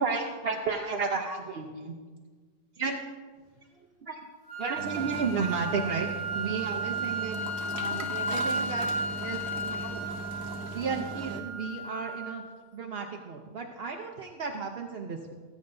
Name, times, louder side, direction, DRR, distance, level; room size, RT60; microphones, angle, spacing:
voice 1, 0.0-2.0 2.8-3.0 3.8-4.2 4.6-6.1 6.3-7.4 7.8-8.9 9.2-10.0 10.7-12.4 12.7-15.3, right 4 dB, 55° right, 2 dB, 0.7 m, -33 dB
sound 1, 4.5-12.5, right 1 dB, 80° left, 2.3 m, -34 dB
sound 2, 4.8-11.4, right 4 dB, 70° right, 1.3 m, -39 dB
19.0 x 8.7 x 2.6 m, 1.5 s
omnidirectional pair, 1.7 m